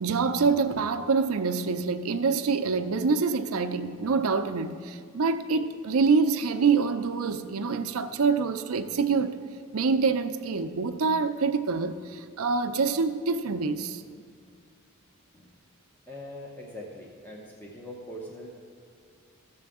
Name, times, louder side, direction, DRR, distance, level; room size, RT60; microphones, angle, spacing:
voice 1, 0.0-9.4 9.7-14.0, right 4 dB, 75° right, 0.5 m, -26 dB
voice 2, 16.1-18.5, left 1 dB, 10° left, 0.7 m, -42 dB
15.0 x 6.8 x 3.6 m
head